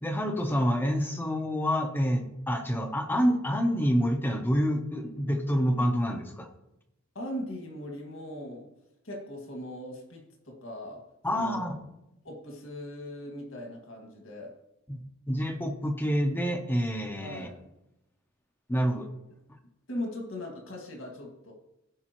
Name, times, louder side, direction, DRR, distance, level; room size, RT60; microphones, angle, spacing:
voice 1, 0.0-6.5 11.2-11.7 14.9-17.5 18.7-19.1, equal, 10° left, 4 dB, 0.7 m, -27 dB
voice 2, 7.2-8.7 9.0-11.0 11.3-11.8 12.2-14.5 17.2-17.7 19.9-21.5, left 1 dB, 60° left, 1 dB, 2.1 m, -39 dB
15.5 x 5.3 x 3.0 m, 0.88 s
head